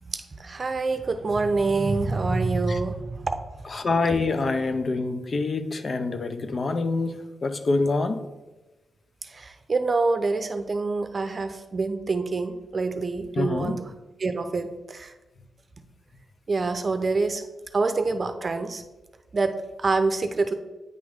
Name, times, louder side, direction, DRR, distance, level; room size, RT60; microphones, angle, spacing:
voice 1, 0.1-3.4 9.2-13.9 14.2-15.1 16.5-17.4 17.7-18.8 19.3-20.5, right 3 dB, 45° right, 8 dB, 0.6 m, -26 dB
voice 2, 3.6-8.3 13.4-13.8, left 3 dB, 50° left, 9 dB, 0.5 m, -26 dB
9.1 x 3.1 x 3.6 m, 1.1 s
cardioid pair, 60°, 0 cm